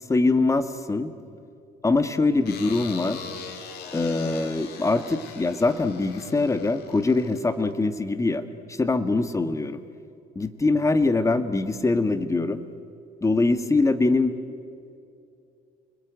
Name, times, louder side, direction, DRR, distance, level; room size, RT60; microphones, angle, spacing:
voice 1, 0.1-1.1 1.8-3.3 3.9-8.4 8.7-9.8 10.3-12.6 13.2-14.3, left 3 dB, 20° left, 10 dB, 1.5 m, -23 dB
sound 1, 2.5-7.8, left 6 dB, 70° left, 3.3 m, -41 dB
29.5 x 21.5 x 9.3 m, 2.5 s
cardioid pair, 110°, 17 cm